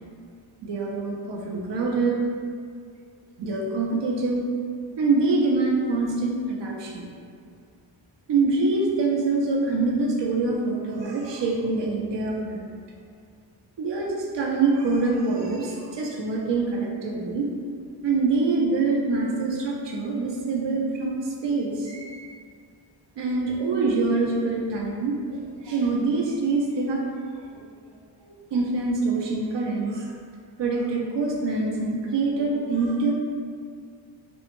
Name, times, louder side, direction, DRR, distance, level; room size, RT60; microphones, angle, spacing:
voice 1, 0.6-2.2 3.4-4.4 5.0-7.1 8.3-12.7 13.8-17.5 18.0-22.3 23.2-27.0 27.5-27.7 28.5-30.1 30.6-33.1, right 3 dB, 65° right, -2 dB, 0.6 m, -25 dB
3.5 x 2.1 x 3.0 m, 2.1 s
wide cardioid pair, 105°, 46 cm